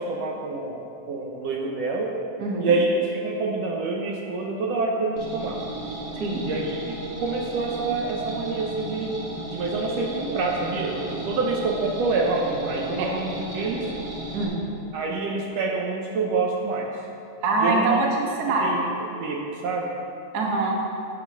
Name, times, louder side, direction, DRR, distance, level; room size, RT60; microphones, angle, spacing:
voice 1, 0.0-2.1 2.6-5.6 6.4-9.1 9.5-13.9 14.9-16.9 17.6-18.0 18.6-18.9 19.2-19.9, right 3 dB, 70° right, 0 dB, 1.7 m, -27 dB
voice 2, 2.4-2.7 6.2-6.4 13.0-13.1 14.3-14.6 17.4-18.7 20.3-20.7, right 3 dB, 55° right, -1 dB, 1.1 m, -24 dB
sound 1, 5.2-14.4, right 1 dB, 35° right, 1.6 m, -35 dB
8.5 x 7.7 x 5.5 m, 2.8 s
omnidirectional pair, 3.3 m